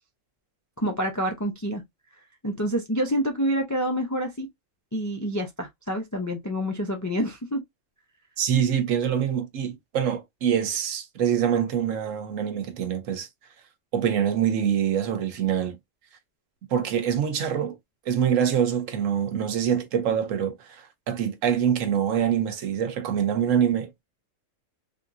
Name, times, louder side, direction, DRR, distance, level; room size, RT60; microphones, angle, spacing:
voice 1, 0.8-1.8 2.4-4.5 4.9-7.6, equal, 30° left, 0.3 m, -27 dB
voice 2, 8.4-13.3 13.9-15.8 16.7-17.8 18.1-24.0, right 8 dB, 80° right, 1.1 m, -25 dB
3.5 x 2.6 x 2.5 m
omnidirectional pair, 1.3 m